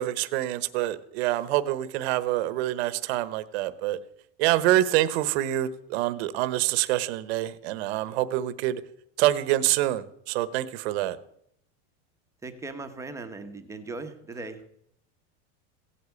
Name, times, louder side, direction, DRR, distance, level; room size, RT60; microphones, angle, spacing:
voice 1, 0.0-4.0 4.4-8.8 9.2-11.2, right 14 dB, 65° right, 14 dB, 1.1 m, -26 dB
voice 2, 12.4-14.7, right 3 dB, 10° right, 6 dB, 1.0 m, -38 dB
16.5 x 8.5 x 8.4 m, 0.72 s
supercardioid pair, 165°, 35 cm